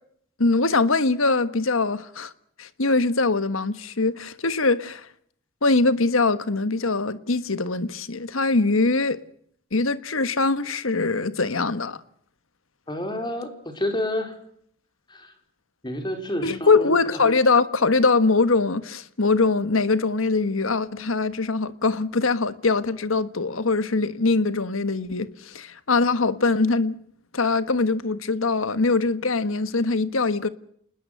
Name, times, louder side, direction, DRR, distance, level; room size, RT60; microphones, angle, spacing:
voice 1, 0.4-2.3 2.6-5.1 5.6-9.2 9.7-12.0 16.4-26.9 27.3-30.5, left 3 dB, 80° left, 1.4 m, -22 dB
voice 2, 12.9-14.4 15.1-15.3 15.8-16.9, left 1 dB, 20° left, 4.4 m, -29 dB
28.0 x 20.5 x 6.6 m
head